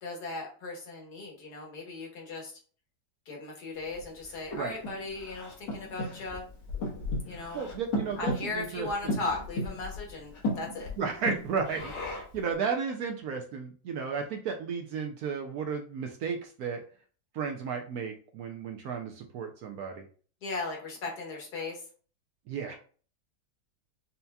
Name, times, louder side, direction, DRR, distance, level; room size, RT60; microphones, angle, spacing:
voice 1, 0.0-2.6 3.3-6.4 7.2-7.6 8.2-10.9 20.4-21.8, left 3 dB, 65° left, 0 dB, 1.7 m, -37 dB
Breathing, 3.9-12.4, left 1 dB, 90° left, 1.9 m, -36 dB
voice 2, 7.5-9.2 11.0-16.8 17.3-20.1 22.5-22.8, right 5 dB, 70° right, 3 dB, 1.0 m, -34 dB
5.6 x 2.7 x 2.3 m, 0.41 s
omnidirectional pair, 1.9 m